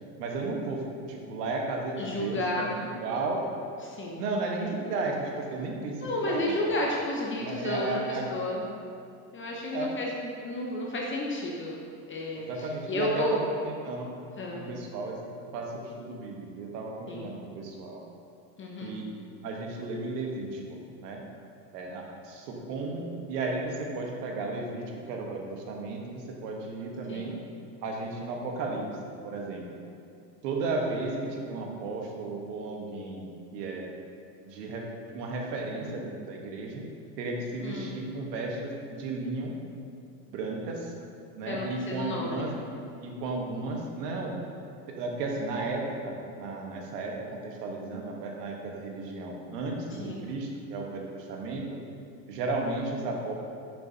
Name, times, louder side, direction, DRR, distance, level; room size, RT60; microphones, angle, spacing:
voice 1, 0.2-3.4 4.2-6.7 7.4-8.2 9.7-9.9 12.4-14.1 14.5-15.2 15.5-18.0 18.8-19.0 19.4-21.2 21.7-27.3 27.8-28.9 29.2-29.8 30.4-33.2 33.5-33.9 34.4-36.8 37.2-39.5 40.3-40.9 41.4-42.5 42.9-44.3 45.0-51.6 52.3-53.3, right 3 dB, 75° right, 0 dB, 1.3 m, -34 dB
voice 2, 2.0-2.7 3.8-4.2 6.0-8.7 9.3-11.8 12.1-13.4 14.4-14.7 17.1-17.3 18.6-19.0 27.1-27.4 37.6-37.9 41.5-42.5 50.0-50.2, left 1 dB, 25° left, -2 dB, 0.7 m, -32 dB
6.3 x 6.3 x 2.8 m, 2.5 s
hypercardioid pair, 100°, 49 cm